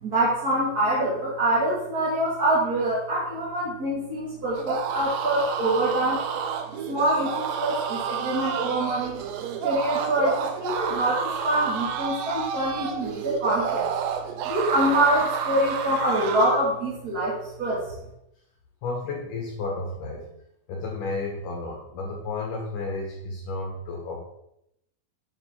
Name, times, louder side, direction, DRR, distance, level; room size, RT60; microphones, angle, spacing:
voice 1, 0.0-6.2 6.9-9.2 9.6-13.9 14.4-17.8, right 1 dB, 30° right, -8 dB, 2.2 m, -25 dB
sound 1, 4.5-16.6, right 7 dB, 75° right, 2.2 m, -30 dB
voice 2, 18.8-20.3 20.7-24.2, left 3 dB, 65° left, 0 dB, 2.7 m, -32 dB
8.2 x 7.4 x 3.8 m, 0.79 s
omnidirectional pair, 4.2 m